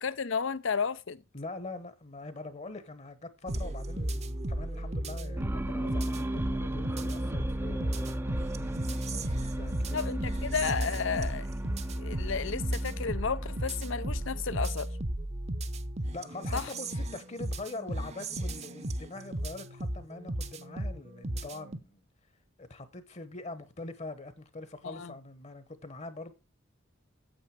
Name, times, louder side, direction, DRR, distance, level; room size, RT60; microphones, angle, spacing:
voice 1, 0.0-1.2 8.4-8.7 9.9-11.5 11.8-14.9 16.5-16.7 24.8-25.1, left 5 dB, 65° left, 0.7 m, -33 dB
voice 2, 1.3-8.5 8.8-10.2 16.0-22.1 22.6-26.3, left 2 dB, 35° left, 1.1 m, -43 dB
sound 1, 3.5-21.8, right 1 dB, 35° right, 0.9 m, -34 dB
sound 2, 5.4-15.0, right 1 dB, 10° right, 0.6 m, -37 dB
9.0 x 7.9 x 4.8 m
head